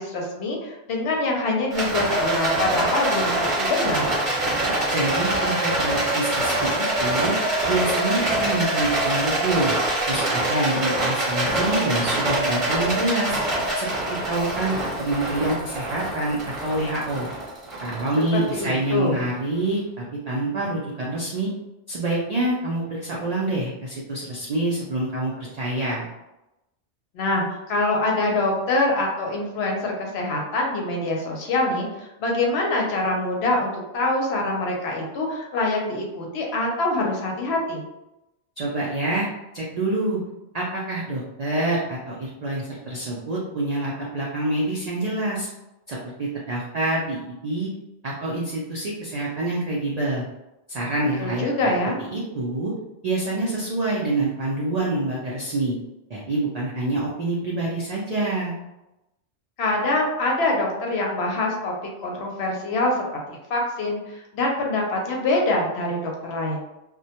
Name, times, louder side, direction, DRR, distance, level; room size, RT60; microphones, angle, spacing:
voice 1, 0.0-4.1 18.3-19.2 27.1-37.8 51.2-52.0 59.6-61.7 62.0-66.6, left 2 dB, 65° left, -1 dB, 0.8 m, -25 dB
Rattle, 1.7-19.1, right 1 dB, 30° right, 0.7 m, -25 dB
voice 2, 4.9-6.7 7.0-7.3 7.7-9.8 10.1-13.4 13.7-17.3 17.8-21.5 21.9-26.1 38.6-39.3 39.5-40.2 40.5-45.5 45.9-47.7 48.0-50.2 50.7-51.5 52.1-52.7 53.0-55.7 56.1-58.5, right 2 dB, 70° right, -5 dB, 0.3 m, -26 dB
2.1 x 2.1 x 2.7 m, 0.94 s
omnidirectional pair, 1.2 m